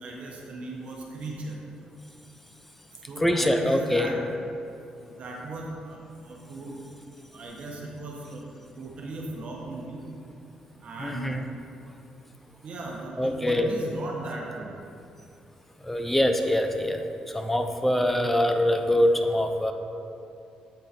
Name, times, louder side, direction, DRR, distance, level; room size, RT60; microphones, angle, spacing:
voice 1, 0.0-1.5 3.1-4.2 5.0-6.0 6.2-6.8 7.3-8.5 8.8-10.0 10.8-11.3 12.6-14.7, right 2 dB, 55° right, -2 dB, 1.1 m, -37 dB
voice 2, 3.2-4.1 11.0-11.5 13.2-13.7 15.8-19.7, left 1 dB, 5° left, 5 dB, 0.6 m, -24 dB
8.0 x 3.9 x 4.3 m, 2.7 s
cardioid pair, 85°, 2 cm